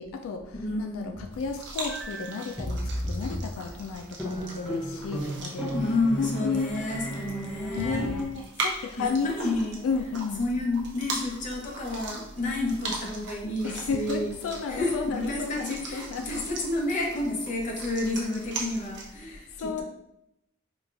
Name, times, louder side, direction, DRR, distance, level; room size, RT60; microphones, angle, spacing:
voice 1, 0.0-5.7 6.2-6.7 7.8-9.3 9.8-10.4 13.6-16.4 19.3-19.8, left 5 dB, 90° left, 5 dB, 0.3 m, -32 dB
voice 2, 0.5-1.2 5.7-8.1 8.7-14.4 14.7-19.8, left 2 dB, 40° left, -1 dB, 0.7 m, -30 dB
sound 1, 1.1-8.2, equal, ahead, 0.4 m, -34 dB
sound 2, 1.3-19.1, right 3 dB, 60° right, 0.6 m, -40 dB
4.7 x 2.3 x 2.4 m, 0.86 s
head